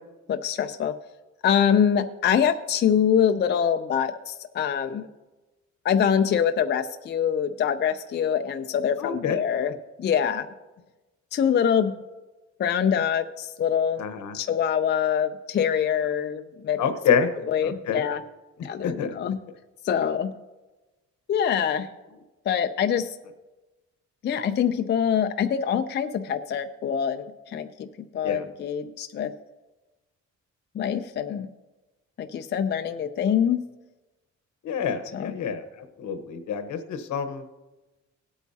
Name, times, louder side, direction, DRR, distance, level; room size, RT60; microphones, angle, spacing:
voice 1, 0.3-0.9 1.4-5.1 5.8-9.7 10.0-10.5 11.3-12.0 12.6-14.0 14.3-16.8 17.5-18.2 18.6-19.4 19.8-20.3 21.3-21.9 22.5-23.2 24.2-29.3 30.7-31.5 32.2-33.7 35.1-35.3, left 8 dB, 35° left, 7 dB, 0.4 m, -24 dB
voice 2, 9.0-9.4 14.0-14.3 16.8-17.3 17.6-18.0 18.8-19.1 28.2-28.4 34.6-35.6 36.0-37.4, left 7 dB, 75° left, 8 dB, 1.1 m, -27 dB
18.5 x 8.3 x 2.8 m, 1.1 s
cardioid pair, 165°, 30 cm